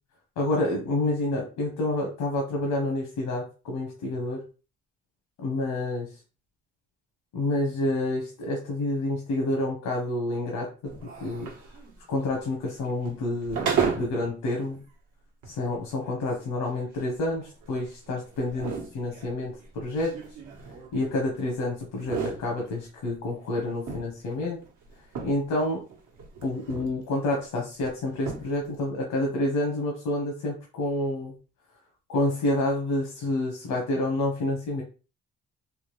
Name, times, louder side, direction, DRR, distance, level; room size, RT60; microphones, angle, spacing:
voice 1, 0.4-4.4 5.4-6.1 7.3-10.7 11.2-11.5 12.1-14.8 15.4-20.2 20.9-24.6 25.2-25.8 26.4-31.3 32.1-34.8, left 2 dB, 85° left, 0 dB, 1.0 m, -28 dB
sound 1, 10.8-14.3 14.7-14.8 15.4-15.5 16.0-21.5 21.8-23.1 23.5-25.6 25.9-27.0 27.3-27.4 27.8-27.9 28.1-28.7, right 6 dB, 80° right, 1.0 m, -34 dB
3.6 x 2.2 x 3.0 m, 0.34 s
cardioid pair, 90°, 30 cm